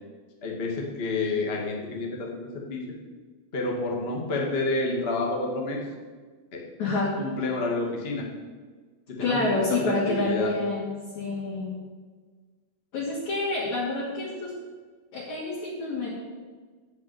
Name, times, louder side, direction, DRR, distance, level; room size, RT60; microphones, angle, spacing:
voice 1, 0.4-2.8 3.5-5.8 6.5-6.6 7.2-8.2 9.1-10.5, left 2 dB, 65° left, -1 dB, 0.5 m, -29 dB
voice 2, 6.8-7.1 9.2-11.8 12.9-14.6 15.1-16.1, left 2 dB, 50° left, -5 dB, 3.0 m, -28 dB
14.0 x 5.9 x 9.3 m, 1.5 s
omnidirectional pair, 5.1 m